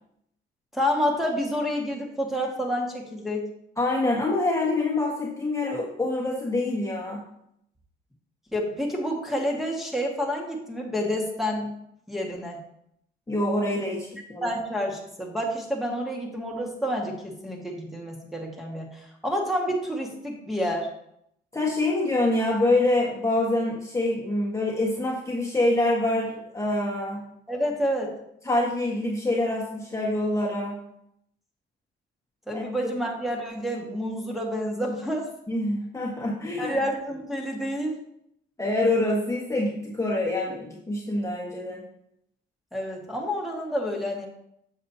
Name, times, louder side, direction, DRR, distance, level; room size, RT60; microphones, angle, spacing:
voice 1, 0.7-3.5 8.5-11.7 12.1-12.6 14.4-20.9 27.5-28.1 32.5-35.3 36.6-38.0 42.7-44.3, equal, ahead, -2 dB, 1.8 m, -29 dB
voice 2, 3.8-7.2 13.3-14.4 21.5-27.2 28.4-30.8 32.5-32.6 35.5-36.7 38.6-41.8, left 2 dB, 15° left, -3 dB, 1.5 m, -26 dB
7.2 x 7.2 x 2.8 m, 0.75 s
cardioid pair, 90°, 20 cm